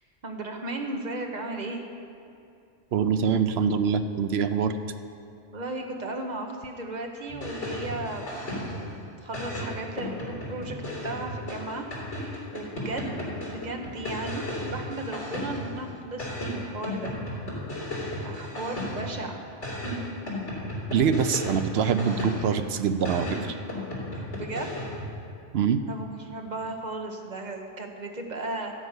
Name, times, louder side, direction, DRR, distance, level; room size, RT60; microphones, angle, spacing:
voice 1, 0.2-1.8 5.5-11.8 12.3-13.1 13.5-17.1 18.2-19.4 24.1-24.8 25.9-28.7, right 2 dB, 40° right, 3 dB, 1.1 m, -35 dB
voice 2, 2.9-4.7 20.9-23.5 25.5-25.8, right 7 dB, 70° right, 9 dB, 0.8 m, -24 dB
sound 1, 7.3-8.9 9.3-15.8 16.2-19.2 19.6-22.6 23.0-25.1, left 1 dB, 80° left, 3.7 m, -34 dB
13.0 x 5.4 x 8.1 m, 2.5 s
omnidirectional pair, 1.2 m